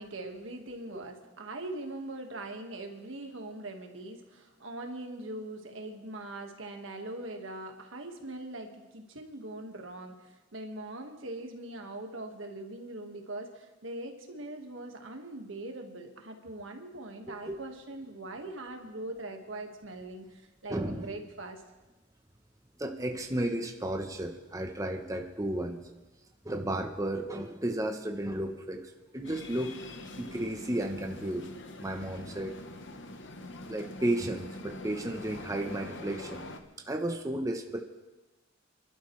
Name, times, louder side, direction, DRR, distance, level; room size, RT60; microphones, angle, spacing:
voice 1, 0.0-21.6, right 2 dB, 80° right, 3 dB, 1.7 m, -41 dB
voice 2, 17.3-17.6 20.7-21.1 22.8-25.9 26.4-29.7 30.2-31.5 31.8-32.6 33.7-36.5 36.8-37.8, right 1 dB, 15° right, 4 dB, 0.8 m, -33 dB
sound 1, 29.2-36.6, left 2 dB, 65° left, 1.0 m, -44 dB
27.5 x 12.0 x 3.2 m, 1.1 s
head